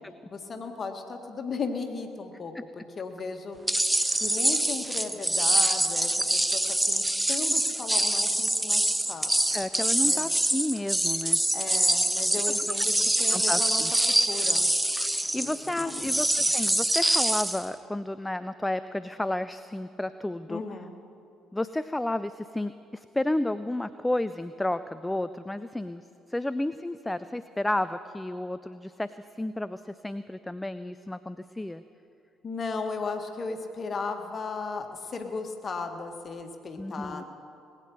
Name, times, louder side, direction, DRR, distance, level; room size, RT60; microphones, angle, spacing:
voice 1, 0.3-3.6 4.1-9.3 10.0-10.2 11.5-12.9 13.2-13.8 14.3-14.7 15.4-16.5 20.5-20.9 32.4-37.2, left 4 dB, 40° left, 6 dB, 1.6 m, -36 dB
sound 1, 3.7-17.7, right 1 dB, 10° right, 0.8 m, -25 dB
voice 2, 9.5-11.4 13.3-13.9 15.1-20.6 21.5-31.8 36.8-37.2, left 1 dB, 10° left, 13 dB, 0.4 m, -32 dB
20.0 x 9.0 x 6.4 m, 2.7 s
figure-of-eight pair, 50°, 0 cm